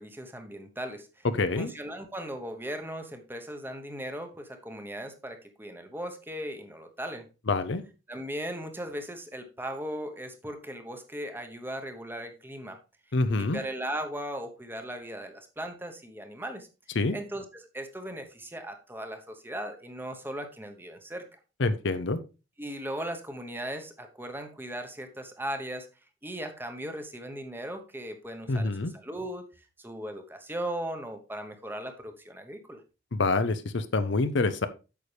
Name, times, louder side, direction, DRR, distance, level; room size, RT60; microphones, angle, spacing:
voice 1, 0.0-1.3 1.6-7.3 8.1-12.8 13.3-16.7 17.1-21.4 22.6-25.9 26.2-32.8, right 1 dB, 10° right, 6 dB, 1.0 m, -38 dB
voice 2, 1.3-1.7 7.5-7.8 13.1-13.6 17.0-17.2 21.6-22.2 28.5-28.9 33.1-34.7, left 3 dB, 65° left, 11 dB, 0.7 m, -26 dB
8.5 x 6.6 x 3.3 m, 0.31 s
head